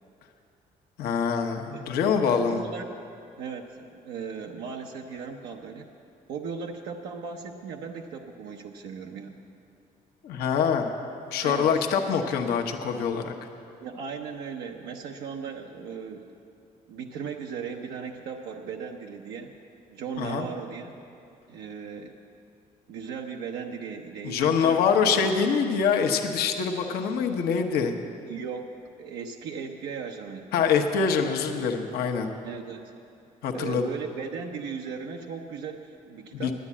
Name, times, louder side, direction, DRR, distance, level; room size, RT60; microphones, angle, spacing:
voice 1, 1.0-2.6 10.2-10.9 11.3-13.3 20.2-20.5 24.2-27.9 30.5-32.3 33.4-33.8 36.3-36.5, left 6 dB, 80° left, 3 dB, 1.0 m, -25 dB
voice 2, 2.3-2.9 3.4-5.9 6.3-9.4 11.4-11.7 13.8-16.3 16.9-19.5 19.9-21.0 21.5-22.2 22.9-24.8 28.2-28.7 29.0-30.5 32.4-32.9 33.5-36.5, right 6 dB, 90° right, 1 dB, 0.7 m, -37 dB
10.5 x 9.8 x 8.4 m, 2.6 s
supercardioid pair, 75°, 16 cm